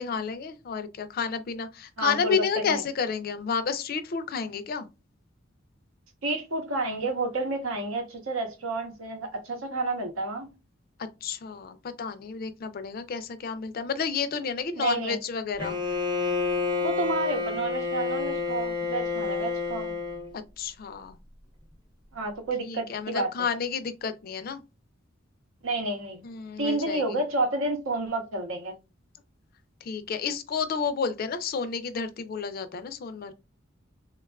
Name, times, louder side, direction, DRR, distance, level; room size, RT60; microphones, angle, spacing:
voice 1, 0.0-4.9 11.2-15.8 20.3-21.2 22.6-24.6 26.2-27.2 29.8-33.3, left 6 dB, 45° left, 0.3 m, -31 dB
voice 2, 2.0-2.4 2.7-2.8 6.2-10.5 14.8-15.2 16.8-19.9 22.1-23.3 25.6-26.2 26.6-28.7, right 2 dB, 90° right, 0.9 m, -30 dB
Bowed string instrument, 15.6-20.3, left 4 dB, 20° right, 0.6 m, -29 dB
3.4 x 2.3 x 2.2 m
head